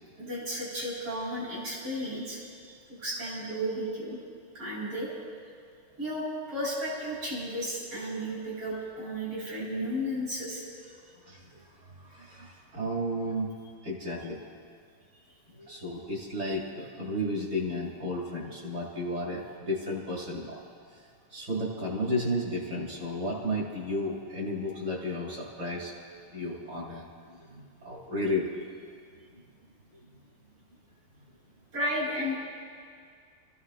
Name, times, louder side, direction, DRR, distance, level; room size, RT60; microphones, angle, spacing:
voice 1, 0.2-4.2 4.5-5.1 6.0-10.9 15.6-15.7 27.4-27.5 29.9-30.0 31.7-32.4, equal, 75° right, -6 dB, 5.7 m, -34 dB
voice 2, 11.2-13.5 13.8-14.4 15.7-20.6 21.3-26.0 26.3-28.5 29.3-29.4, left 1 dB, 50° right, -3 dB, 2.8 m, -33 dB
29.0 x 15.0 x 2.4 m, 2.1 s
omnidirectional pair, 2.4 m